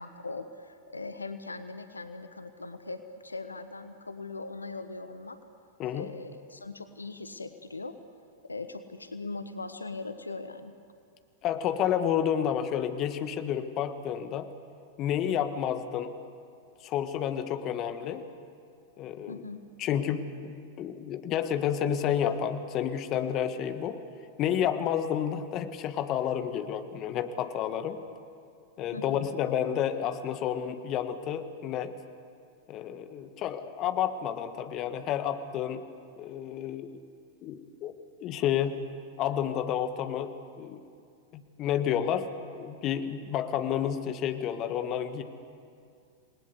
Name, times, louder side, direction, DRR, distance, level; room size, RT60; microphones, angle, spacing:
voice 1, 0.0-5.4 5.9-7.9 8.4-10.8 19.3-19.6 28.9-29.3, left 3 dB, 85° left, 10 dB, 1.2 m, -40 dB
voice 2, 5.8-6.1 11.4-14.5 15.0-16.1 16.8-18.2 19.0-19.4 19.8-20.5 20.8-24.0 24.4-28.0 28.8-31.9 32.7-35.9 36.2-36.9 37.4-37.9 38.2-38.7 39.2-40.3 40.6-40.8 41.3-42.3 42.5-45.2, left 9 dB, 35° left, 9 dB, 1.6 m, -30 dB
28.0 x 20.5 x 8.3 m, 2.3 s
figure-of-eight pair, 95°, 0 cm